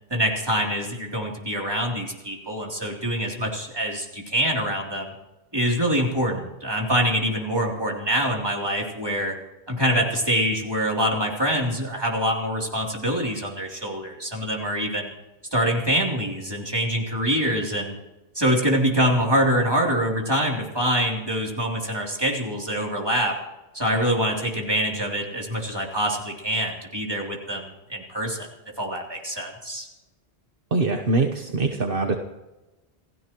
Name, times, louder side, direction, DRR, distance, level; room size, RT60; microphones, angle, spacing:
voice 1, 0.1-5.1 5.5-9.3 9.7-15.1 15.5-18.0 18.3-23.3 23.7-28.5 28.8-29.9, equal, 25° right, -2 dB, 3.3 m, -25 dB
voice 2, 30.7-32.2, right 3 dB, 60° right, 4 dB, 1.3 m, -23 dB
28.0 x 16.0 x 3.1 m, 1.1 s
omnidirectional pair, 1.1 m